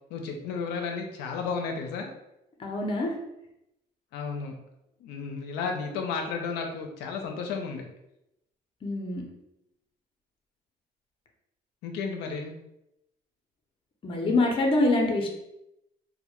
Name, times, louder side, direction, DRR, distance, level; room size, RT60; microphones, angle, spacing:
voice 1, 0.1-2.1 4.1-4.5 5.0-7.9 11.8-12.5, left 5 dB, 80° left, 3 dB, 0.4 m, -33 dB
voice 2, 2.6-3.1 8.8-9.2 14.0-15.3, left 2 dB, 30° left, 2 dB, 0.5 m, -25 dB
2.1 x 2.1 x 2.9 m, 0.85 s
cardioid pair, 110°, 17 cm